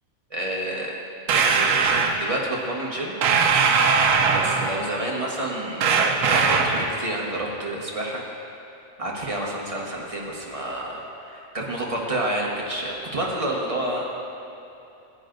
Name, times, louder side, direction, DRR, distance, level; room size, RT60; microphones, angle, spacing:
voice 1, 0.3-0.9 1.3-1.7 2.2-3.1 4.3-8.2 9.0-14.1, right 1 dB, 25° right, -3 dB, 1.2 m, -29 dB
sound 1, 1.3-2.2 3.2-4.8 5.8-6.9, right 5 dB, 80° right, 1.1 m, -20 dB
15.0 x 9.9 x 2.6 m, 2.9 s
omnidirectional pair, 1.4 m